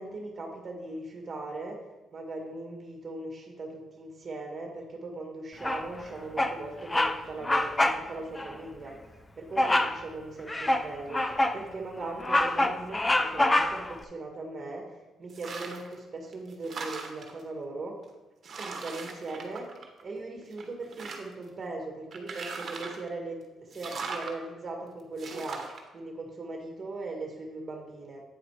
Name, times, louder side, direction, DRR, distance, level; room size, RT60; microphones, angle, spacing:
voice 1, 0.0-18.0 18.6-19.7 20.0-28.2, right 2 dB, 30° right, 1 dB, 1.9 m, -39 dB
Bird vocalization bird call bird song, 5.6-6.0 6.4-6.6 6.9-7.2 7.4-8.0 8.4-8.5 9.6-10.0 10.5-11.6 12.0-14.0, left 1 dB, 15° left, 0.5 m, -25 dB
sound 1, 15.3-15.9 16.3-17.4 18.0-18.1 18.4-20.2 20.5-21.4 22.1-23.1 23.7-24.3 25.2-25.8, right 4 dB, 50° right, 1.2 m, -39 dB
8.7 x 4.9 x 4.8 m, 1.1 s
cardioid pair, 90°, 0 cm